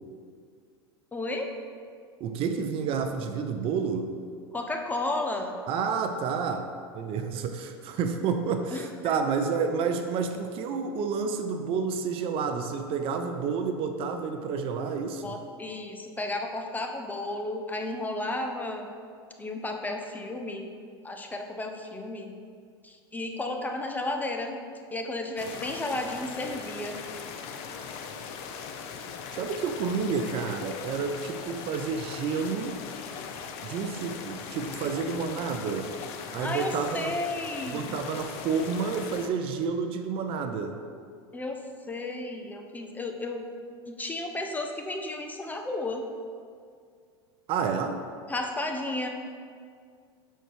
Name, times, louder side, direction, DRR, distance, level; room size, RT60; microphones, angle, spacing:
voice 1, 1.1-1.5 4.5-5.6 8.7-9.1 15.2-18.9 19.4-20.7 21.0-22.3 22.8-24.6 24.9-27.0 36.4-38.0 41.3-41.6 41.9-43.5 43.9-46.0 48.3-49.1, left 2 dB, 15° left, 3 dB, 0.7 m, -33 dB
voice 2, 2.2-4.2 5.7-15.4 29.3-32.8 33.6-35.9 36.3-37.1 37.7-40.8 47.5-48.0, right 5 dB, 45° right, 7 dB, 0.6 m, -30 dB
sound 1, 25.4-39.3, left 6 dB, 55° left, 0.6 m, -39 dB
6.4 x 4.5 x 4.7 m, 2.2 s
hypercardioid pair, 95°, 13 cm